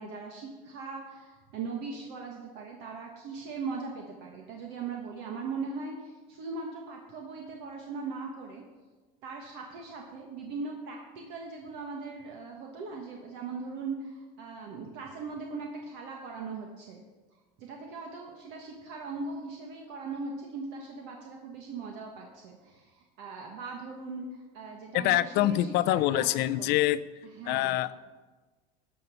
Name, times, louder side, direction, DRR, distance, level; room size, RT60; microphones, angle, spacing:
voice 1, 0.0-8.6 9.2-17.0 17.6-26.7 27.2-27.8, right 4 dB, 65° right, 1 dB, 1.5 m, -39 dB
voice 2, 24.9-27.0 27.5-27.9, left 15 dB, 55° left, 15 dB, 0.5 m, -25 dB
12.5 x 5.4 x 6.9 m, 1.3 s
supercardioid pair, 130°, 20 cm